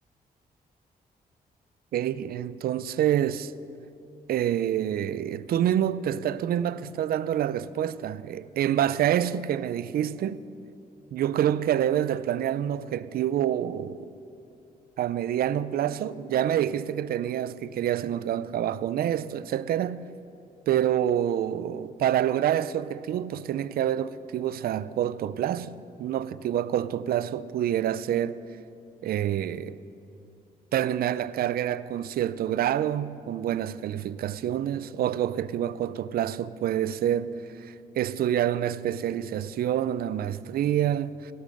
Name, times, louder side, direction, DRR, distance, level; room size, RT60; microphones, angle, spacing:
voice 1, 1.9-3.5 4.3-10.4 11.1-14.0 15.0-20.1 20.7-28.4 29.0-29.8 30.7-41.3, right 10 dB, 70° right, 0.5 m, -27 dB
17.5 x 12.5 x 5.3 m
cardioid pair, 130°, 16 cm